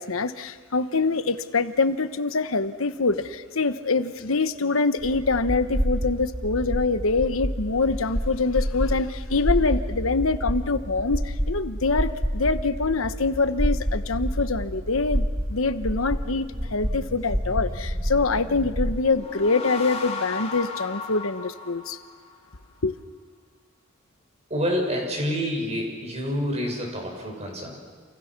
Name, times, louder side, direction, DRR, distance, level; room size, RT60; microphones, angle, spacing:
voice 1, 0.0-15.2 15.5-22.0 22.8-22.9, left 3 dB, 85° left, 1.2 m, -25 dB
sound 1, 5.0-19.0, equal, 15° right, 2.5 m, -28 dB
sound 2, 19.0-22.5, left 4 dB, 30° left, 2.9 m, -35 dB
voice 2, 24.5-27.8, equal, 35° right, 6.5 m, -28 dB
29.0 x 28.5 x 6.1 m
head